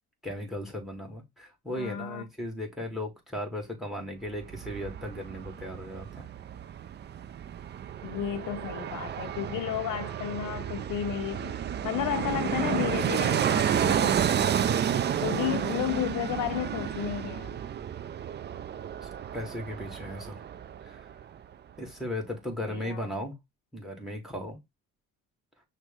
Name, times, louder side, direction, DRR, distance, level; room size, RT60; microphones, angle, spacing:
voice 1, 0.2-6.3 19.0-20.4 20.8-21.1 21.8-23.4 23.7-24.6, left 1 dB, ahead, 1.7 m, -36 dB
voice 2, 1.7-2.2 8.0-11.5 11.8-14.8 15.2-17.6 22.6-23.1, left 11 dB, 65° left, 0.6 m, -33 dB
Fixed-wing aircraft airplane, 4.3-21.2 21.5-21.6, right 9 dB, 35° right, 0.4 m, -31 dB
6.0 x 2.2 x 3.6 m
cardioid pair, 90°, 34 cm